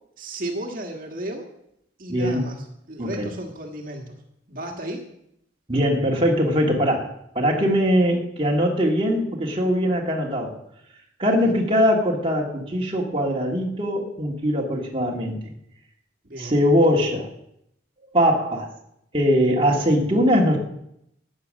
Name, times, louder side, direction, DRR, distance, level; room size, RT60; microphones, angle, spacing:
voice 1, 0.2-1.5 2.0-4.2 4.5-5.1 11.3-11.5 16.2-16.6, right 1 dB, 50° right, 2 dB, 1.7 m, -34 dB
voice 2, 2.1-2.5 3.0-3.3 5.7-10.5 11.2-15.4 16.4-17.3 18.1-18.7 19.1-20.6, equal, 30° right, -1 dB, 1.8 m, -21 dB
14.0 x 9.0 x 6.5 m, 0.79 s
head